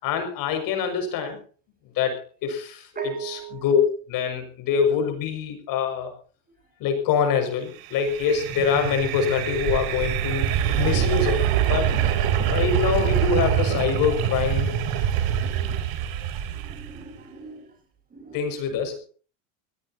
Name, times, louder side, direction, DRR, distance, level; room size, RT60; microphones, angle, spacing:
voice 1, 0.0-1.4 1.9-3.8 4.1-6.1 6.8-10.5 10.8-12.0 12.4-14.7 15.6-15.7 18.3-19.1, left 6 dB, 50° left, 6 dB, 6.0 m, -25 dB
voice 2, 3.0-3.6 16.5-17.7 18.1-18.4, right 8 dB, 20° right, 4 dB, 5.8 m, -37 dB
sound 1, 7.8-17.0, right 9 dB, 55° right, 3.5 m, -24 dB
26.0 x 17.5 x 2.8 m, 0.38 s
supercardioid pair, 130°, 43 cm